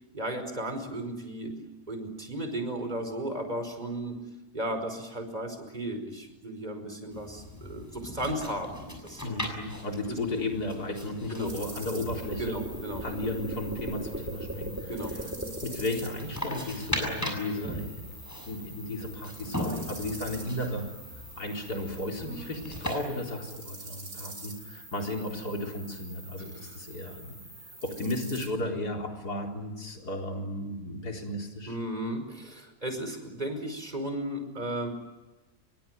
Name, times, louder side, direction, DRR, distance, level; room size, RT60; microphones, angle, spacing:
voice 1, 0.1-1.5 1.9-4.2 4.5-9.2 10.1-10.2 11.3-11.5 12.4-13.1 14.8-15.1 26.5-26.8 31.7-34.9, right 1 dB, 25° right, 7 dB, 5.2 m, -35 dB
sound 1, 7.1-23.0, left 1 dB, 10° left, 6.8 m, -39 dB
voice 2, 9.2-12.6 13.0-15.2 15.6-18.0 18.4-20.8 21.4-27.3 27.8-31.8, left 1 dB, 80° left, 1 dB, 4.5 m, -34 dB
sound 2, 10.8-16.2, right 1 dB, 10° right, 3.2 m, -39 dB
sound 3, 11.4-28.5, right 2 dB, 75° right, 7.1 m, -46 dB
26.5 x 24.0 x 9.3 m, 1.1 s
omnidirectional pair, 1.7 m